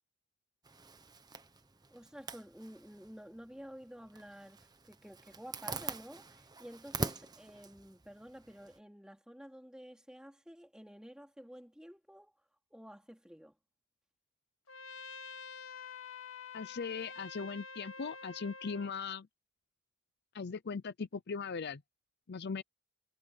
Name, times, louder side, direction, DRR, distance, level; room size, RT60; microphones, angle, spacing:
Zipper (clothing), 0.6-8.8, right 3 dB, 20° right, 1.2 m, -45 dB
voice 1, 1.9-12.3 12.7-13.5, equal, 5° right, 3.3 m, -51 dB
Trumpet, 14.7-19.0, left 5 dB, 90° left, 1.9 m, -48 dB
voice 2, 16.5-19.3 20.3-21.8 22.3-22.6, left 5 dB, 55° left, 0.6 m, -39 dB
head